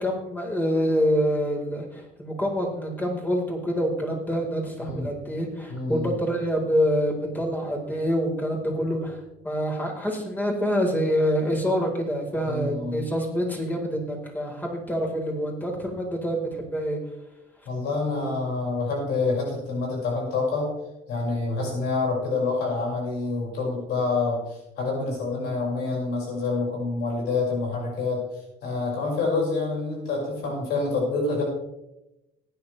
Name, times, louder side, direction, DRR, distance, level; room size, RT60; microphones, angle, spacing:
voice 1, 0.0-17.0, equal, 10° left, -1 dB, 4.2 m, -26 dB
voice 2, 5.7-6.1 12.5-13.1 17.7-20.7 21.1-28.2 28.6-31.4, left 3 dB, 80° left, -2 dB, 5.6 m, -27 dB
18.5 x 10.0 x 3.3 m, 0.92 s
cardioid pair, 110°, 17 cm